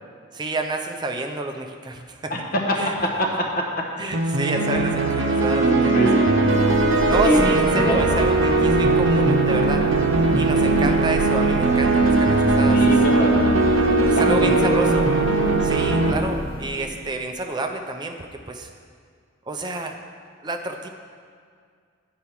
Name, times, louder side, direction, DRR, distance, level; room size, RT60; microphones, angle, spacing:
voice 1, 0.3-2.3 2.8-2.9 4.0-6.1 7.1-9.8 10.3-12.8 14.1-15.1 15.6-18.7 19.5-20.0 20.4-20.9, right 2 dB, 20° right, 4 dB, 0.5 m, -29 dB
voice 2, 2.3-4.2 5.7-6.2 7.2-7.4 7.8-8.0 12.7-13.4 13.8-15.0, left 1 dB, 45° left, 0 dB, 1.0 m, -25 dB
sound 1, 4.1-16.1, right 3 dB, 70° right, 0.8 m, -19 dB
Thunder, 6.0-17.1, right 1 dB, 45° right, 1.0 m, -32 dB
8.3 x 4.7 x 5.7 m, 2.1 s
head